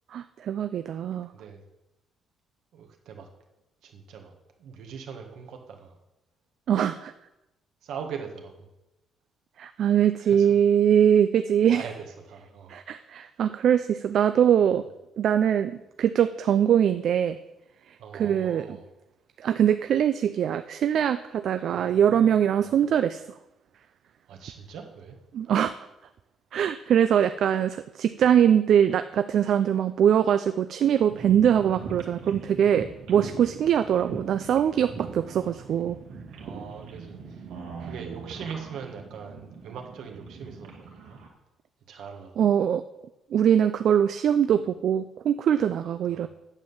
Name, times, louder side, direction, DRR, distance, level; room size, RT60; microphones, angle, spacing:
voice 1, 0.1-1.3 6.7-7.1 9.6-11.8 12.7-14.8 15.2-17.4 18.1-18.6 19.4-23.2 25.3-25.7 26.5-36.0 42.4-42.8 43.3-46.3, right 9 dB, 50° right, 10 dB, 0.4 m, -22 dB
voice 2, 1.3-1.6 2.7-3.3 3.8-4.3 4.6-6.0 7.8-8.7 10.2-10.6 11.6-13.1 18.0-18.8 21.5-22.9 24.3-25.2 33.1-33.4 35.0-35.8 36.4-37.5 37.8-41.2 41.9-42.5 46.1-46.3, right 6 dB, 65° right, 3 dB, 1.7 m, -42 dB
sound 1, 31.1-41.3, right 4 dB, 85° right, 2.2 m, -41 dB
9.0 x 7.8 x 7.1 m, 0.95 s
cardioid pair, 180°, 0 cm